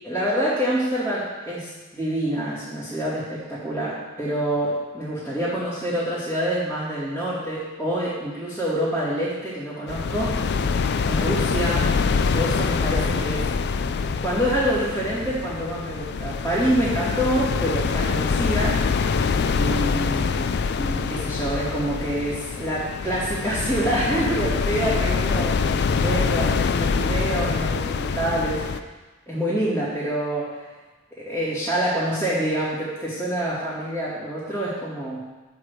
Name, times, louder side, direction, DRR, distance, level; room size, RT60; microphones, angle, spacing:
voice 1, 0.0-10.4 11.0-11.9 12.3-13.5 13.8-13.9 14.2-18.8 19.5-20.4 20.8-28.8 29.3-30.6 31.2-35.2, right 1 dB, 10° left, -14 dB, 2.7 m, -26 dB
sound 1, 9.9-28.8, left 5 dB, 50° left, 0.4 m, -24 dB
8.2 x 4.9 x 6.9 m, 1.2 s
head